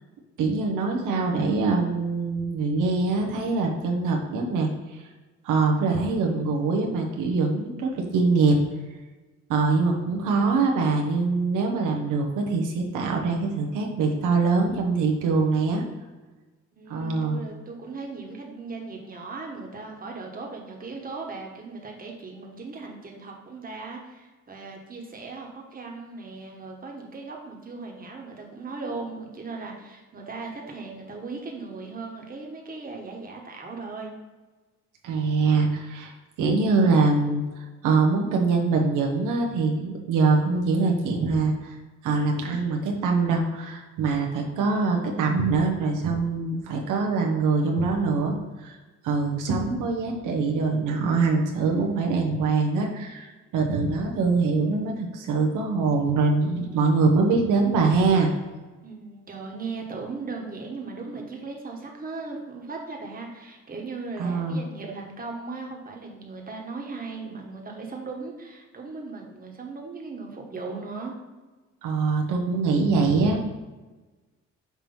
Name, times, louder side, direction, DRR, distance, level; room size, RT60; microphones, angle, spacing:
voice 1, 0.4-5.1 5.4-8.6 9.5-15.8 16.9-17.4 35.0-36.1 36.4-41.8 42.0-48.8 49.0-58.3 64.2-64.6 71.8-73.4, right 4 dB, 90° right, 1 dB, 1.0 m, -23 dB
voice 2, 16.8-34.1 58.8-71.1, right 3 dB, 30° right, 0 dB, 1.2 m, -37 dB
5.9 x 3.0 x 5.3 m, 1.2 s
cardioid pair, 90°, 30 cm